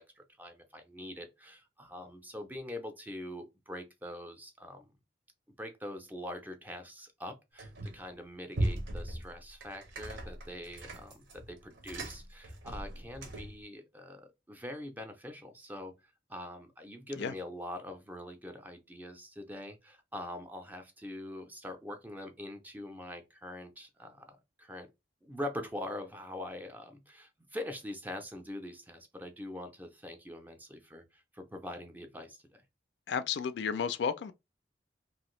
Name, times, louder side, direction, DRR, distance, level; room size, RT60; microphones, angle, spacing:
voice 1, 0.0-4.9 5.6-15.9 16.3-24.9 25.2-32.6, left 1 dB, 10° right, 0.4 m, -43 dB
sound 1, 7.6-8.1 8.5-13.6, right 1 dB, 75° right, 0.8 m, -38 dB
voice 2, 33.1-34.3, left 6 dB, 70° left, 0.3 m, -32 dB
2.8 x 2.5 x 3.0 m
head